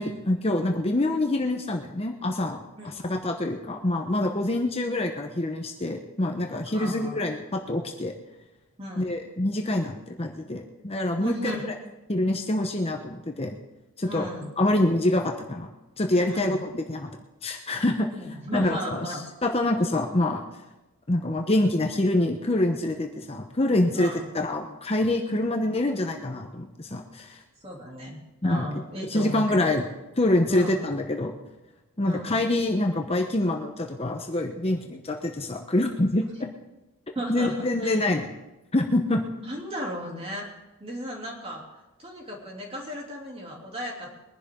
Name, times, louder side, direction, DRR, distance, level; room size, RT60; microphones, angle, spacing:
voice 1, 0.0-2.6 2.8-8.1 9.0-11.4 12.1-13.6 14.0-14.3 14.6-15.7 16.0-17.1 17.4-18.1 18.5-20.5 21.1-24.1 24.3-27.4 28.4-28.7 29.1-29.8 30.2-31.3 32.0-36.5 37.3-38.3 38.7-39.2, left 1 dB, 25° left, 3 dB, 0.9 m, -26 dB
voice 2, 6.7-7.2 8.8-9.2 11.2-11.7 14.1-14.5 16.3-16.7 18.1-19.2 24.0-24.3 27.6-29.8 30.5-30.9 32.0-32.4 37.1-38.0 39.4-40.5 40.8-41.6 42.0-44.1, equal, 25° right, -1 dB, 2.9 m, -35 dB
22.0 x 11.0 x 3.7 m, 1.0 s
head